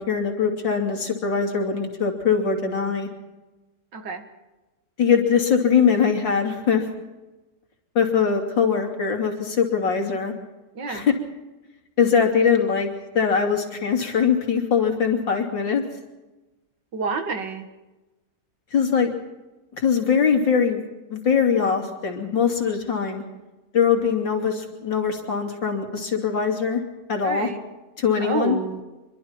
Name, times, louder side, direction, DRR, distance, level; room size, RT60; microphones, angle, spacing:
voice 1, 0.0-3.1 5.0-6.9 8.0-10.3 10.9-11.1 12.0-15.8 18.7-19.1 19.8-20.8 21.1-23.2 23.7-26.8 27.1-27.5 28.0-28.6, left 6 dB, 90° left, 3 dB, 3.6 m, -22 dB
voice 2, 3.9-4.2 10.8-11.1 16.9-17.7 27.2-27.6 28.2-28.8, right 4 dB, 75° right, 7 dB, 2.4 m, -28 dB
26.0 x 23.5 x 4.4 m, 1.1 s
omnidirectional pair, 1.9 m